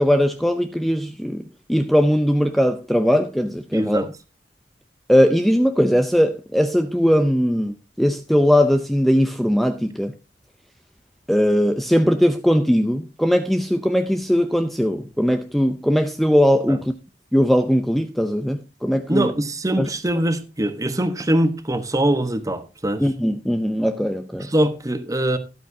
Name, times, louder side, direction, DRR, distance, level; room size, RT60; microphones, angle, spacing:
voice 1, 0.0-1.4 1.7-4.0 5.1-10.1 11.3-16.9 17.3-19.3 19.8-19.9 23.0-24.5, equal, ahead, 0.5 m, -19 dB
voice 2, 3.7-4.1 16.7-16.8 19.1-23.0 24.4-25.4, right 1 dB, 20° right, 1.1 m, -22 dB
13.0 x 12.0 x 2.7 m
head